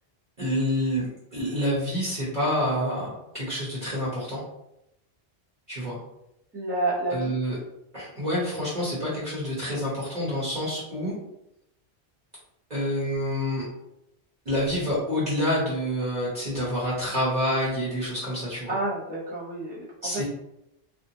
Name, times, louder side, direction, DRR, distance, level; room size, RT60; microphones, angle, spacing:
voice 1, 0.4-4.4 5.7-6.0 7.1-7.6 7.9-11.1 12.7-13.7 14.4-18.7 20.0-20.2, equal, 45° right, -8 dB, 0.9 m, -27 dB
voice 2, 6.5-7.3 18.7-20.2, right 2 dB, 10° right, -9 dB, 1.0 m, -29 dB
2.6 x 2.2 x 2.7 m, 0.84 s
omnidirectional pair, 1.1 m